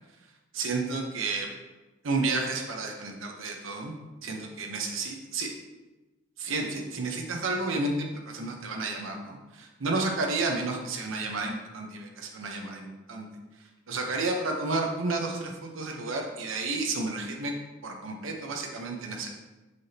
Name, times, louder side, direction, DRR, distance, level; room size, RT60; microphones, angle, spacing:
voice 1, 0.5-1.5 2.0-3.9 4.2-5.5 6.4-13.3 13.9-17.5 17.8-19.3, right 3 dB, 75° right, 1 dB, 0.9 m, -31 dB
6.3 x 5.9 x 2.8 m, 1.1 s
head